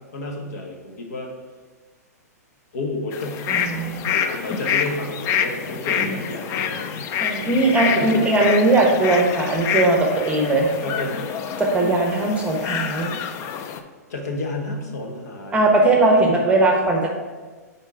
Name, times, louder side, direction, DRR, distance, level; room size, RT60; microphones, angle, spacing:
voice 1, 0.1-1.3 2.7-3.4 4.1-6.9 7.9-8.3 10.8-11.2 14.1-15.6 16.2-16.4, left 2 dB, 70° left, 2 dB, 1.2 m, -30 dB
sound 1, 3.1-13.8, left 7 dB, 30° left, 0.4 m, -27 dB
voice 2, 3.5-4.1 5.9-6.1 7.2-10.7 11.6-13.1 15.5-17.1, right 2 dB, 15° right, 1 dB, 1.0 m, -19 dB
5.3 x 4.3 x 4.8 m, 1.4 s
hypercardioid pair, 120°, 9 cm